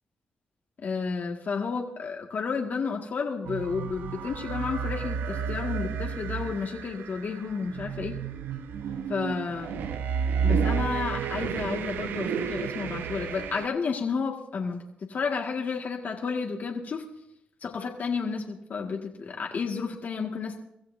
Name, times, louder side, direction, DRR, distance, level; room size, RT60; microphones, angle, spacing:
voice 1, 0.8-8.2 9.1-9.8 10.4-14.8 15.1-17.0 17.6-20.6, left 5 dB, 60° left, 0 dB, 2.0 m, -31 dB
sound 1, 3.5-13.7, right 6 dB, 85° right, 0.8 m, -31 dB
24.5 x 14.0 x 2.7 m, 0.77 s
supercardioid pair, 55°, 3 cm